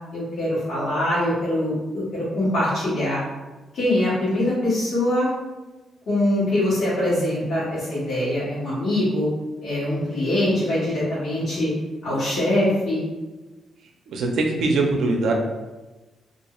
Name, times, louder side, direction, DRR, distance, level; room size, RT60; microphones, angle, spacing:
voice 1, 0.1-3.2 3.7-5.3 6.1-9.3 9.6-11.7 12.0-13.0, left 1 dB, 75° left, -12 dB, 1.1 m, -23 dB
voice 2, 14.1-15.3, right 3 dB, 75° right, 2 dB, 0.4 m, -22 dB
2.4 x 2.3 x 2.9 m, 1.2 s
cardioid pair, 90°, 0 cm